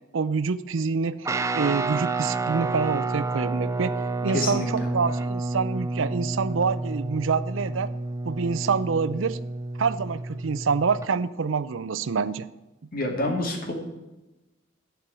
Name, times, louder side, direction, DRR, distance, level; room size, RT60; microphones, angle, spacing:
voice 1, 0.1-1.3 1.5-4.0 4.2-7.9 8.3-9.4 9.8-12.5, right 5 dB, 80° right, 15 dB, 0.5 m, -26 dB
Guitar, 1.2-11.1, right 3 dB, 15° right, 0.4 m, -30 dB
voice 2, 4.3-4.7 12.9-13.7, left 2 dB, 45° left, 2 dB, 2.2 m, -27 dB
11.5 x 4.6 x 8.3 m, 1.0 s
head